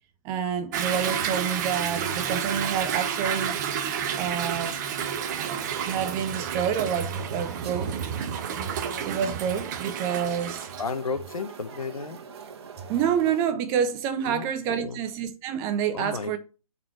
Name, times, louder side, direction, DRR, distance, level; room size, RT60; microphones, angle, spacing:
voice 1, 0.2-3.6 4.2-4.8 5.8-8.1 9.1-10.7 12.9-16.4, right 8 dB, 15° right, 0.4 m, -28 dB
Toilet flush / Drip / Trickle dribble, 0.7-10.8, right 8 dB, 30° right, 0.8 m, -30 dB
sound 1, 6.9-13.5, right 6 dB, 45° right, 1.4 m, -43 dB
voice 2, 10.8-12.2 14.3-14.4 14.7-15.0 15.9-16.4, left 4 dB, 75° left, 1.1 m, -33 dB
7.4 x 4.3 x 6.6 m
figure-of-eight pair, 140°, 18 cm